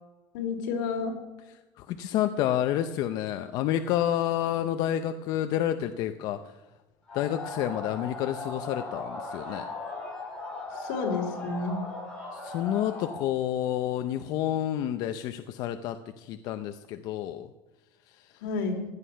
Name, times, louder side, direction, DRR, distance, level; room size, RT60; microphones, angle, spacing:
voice 1, 0.3-1.1 10.7-11.8 18.4-18.9, left 4 dB, 80° left, 3 dB, 3.3 m, -30 dB
voice 2, 1.8-6.5 7.1-9.7 12.3-17.5 18.1-18.4, left 11 dB, 45° left, 8 dB, 0.7 m, -29 dB
sound 1, 7.1-13.3, left 3 dB, 10° left, 4.3 m, -38 dB
16.5 x 11.5 x 5.7 m, 1.1 s
cardioid pair, 175°, 9 cm